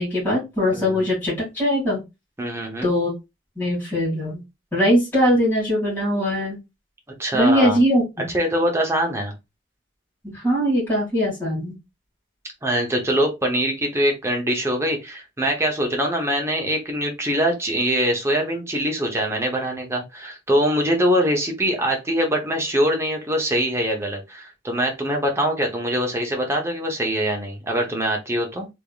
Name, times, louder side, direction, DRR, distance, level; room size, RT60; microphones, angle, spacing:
voice 1, 0.0-2.0 2.8-3.1 3.6-4.4 4.7-6.6 7.3-8.3 10.2-11.8, equal, 10° left, 2.2 m, -21 dB
voice 2, 0.7-1.0 2.4-2.9 7.2-7.8 8.3-9.3 12.6-28.7, equal, 15° right, 0.8 m, -23 dB
3.5 x 3.4 x 2.3 m
head